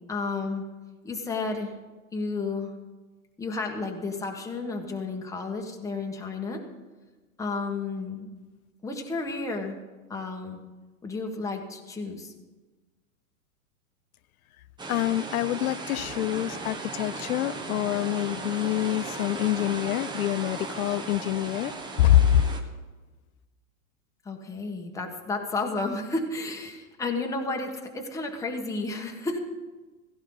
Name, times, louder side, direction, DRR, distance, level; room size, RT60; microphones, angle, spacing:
voice 1, 0.1-0.6 1.0-1.7 2.1-2.7 3.4-6.6 7.4-8.3 8.8-9.8 10.1-10.6 11.0-12.3 24.2-29.4, left 3 dB, 5° left, 1.5 m, -32 dB
sound 1, 14.8-22.6, right 3 dB, 10° right, 1.3 m, -36 dB
voice 2, 14.9-22.5, left 13 dB, 80° left, 0.6 m, -25 dB
16.5 x 16.0 x 4.0 m
hypercardioid pair, 135°, 43 cm